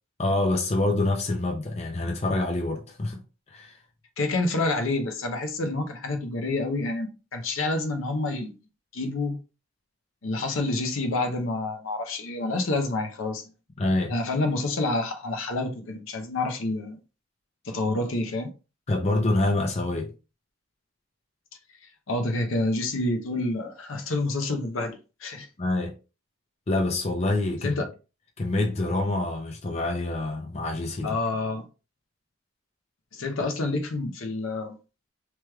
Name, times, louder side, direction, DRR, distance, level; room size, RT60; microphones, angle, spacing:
voice 1, 0.2-3.2 3.5-3.8 13.8-14.1 18.9-20.1 25.6-25.9 26.7-27.8 28.4-31.2, left 2 dB, 30° left, 0.5 m, -26 dB
voice 2, 4.2-8.6 8.9-9.4 10.2-13.5 14.1-17.0 17.6-18.5 22.1-25.5 27.6-27.9 31.0-31.6 33.1-34.8, left 2 dB, 75° left, 0.6 m, -28 dB
3.2 x 3.0 x 2.2 m
head